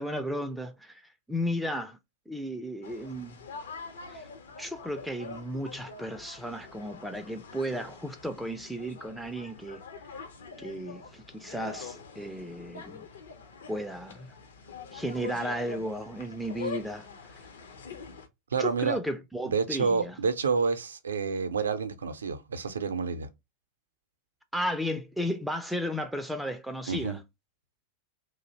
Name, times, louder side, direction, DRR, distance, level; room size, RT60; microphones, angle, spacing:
voice 1, 0.0-2.0 2.3-3.4 4.1-4.3 4.6-9.8 10.6-13.1 13.7-14.3 14.9-17.5 18.6-20.2 24.5-27.2, equal, ahead, 0.3 m, -34 dB
sound 1, 2.8-18.3, left 5 dB, 65° left, 0.6 m, -44 dB
voice 2, 18.5-19.0 19.5-23.3 26.9-27.2, right 5 dB, 70° right, 0.4 m, -29 dB
2.6 x 2.0 x 3.8 m
figure-of-eight pair, 90°, 0 cm